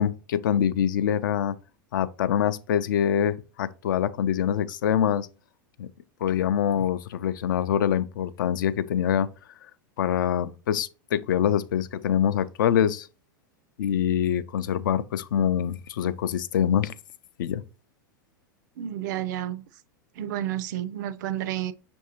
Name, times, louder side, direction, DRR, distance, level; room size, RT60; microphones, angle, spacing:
voice 1, 0.0-1.5 1.9-5.3 5.8-5.9 6.2-9.3 10.0-13.1 13.8-16.9 17.4-17.6, left 9 dB, 70° left, 0.4 m, -25 dB
voice 2, 18.8-19.7 20.2-21.7, right 12 dB, 60° right, 0.4 m, -31 dB
6.3 x 2.6 x 2.8 m
hypercardioid pair, 95°, 11 cm